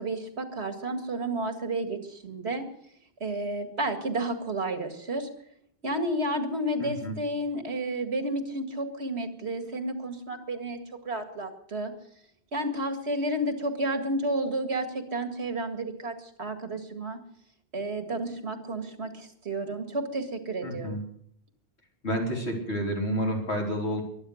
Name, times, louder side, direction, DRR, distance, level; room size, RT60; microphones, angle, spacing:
voice 1, 0.0-2.6 3.2-5.3 5.8-10.8 11.1-11.9 12.5-17.2 17.7-21.0, right 1 dB, 80° right, 6 dB, 2.3 m, -31 dB
voice 2, 6.8-7.2 20.6-21.0 22.0-24.0, equal, 85° left, 0 dB, 4.0 m, -29 dB
22.5 x 9.3 x 6.5 m, 0.69 s
omnidirectional pair, 1.1 m